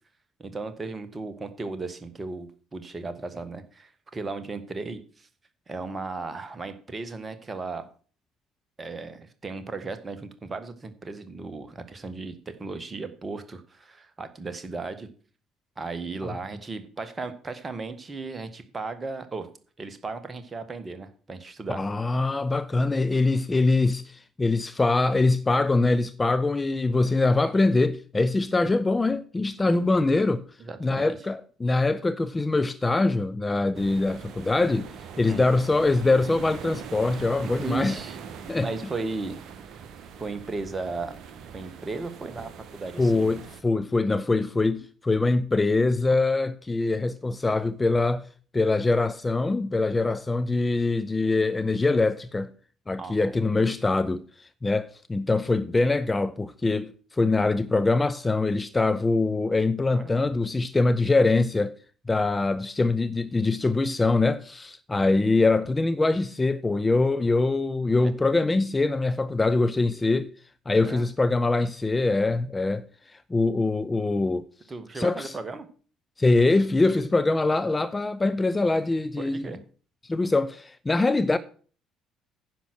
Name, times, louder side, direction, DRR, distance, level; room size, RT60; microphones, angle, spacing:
voice 1, 0.4-5.3 5.7-7.9 8.8-15.1 15.7-19.5 19.8-21.8 29.6-29.8 30.6-31.2 35.2-35.4 37.4-38.2 38.5-39.4 40.2-41.2 41.5-43.4 53.0-53.6 59.9-60.1 70.8-71.1 74.7-75.7 79.2-79.6, right 3 dB, 25° right, 1.6 m, -36 dB
voice 2, 21.7-30.4 30.8-34.9 35.2-38.0 38.5-38.7 43.0-48.3 48.5-52.5 52.9-61.7 62.1-70.3 70.7-72.9 73.3-74.5 75.0-75.3 76.2-79.5 80.0-81.4, left 3 dB, 20° left, 0.6 m, -23 dB
sound 1, 33.7-43.6, right 7 dB, 50° right, 1.1 m, -42 dB
10.0 x 6.0 x 6.6 m
figure-of-eight pair, 50°, 0 cm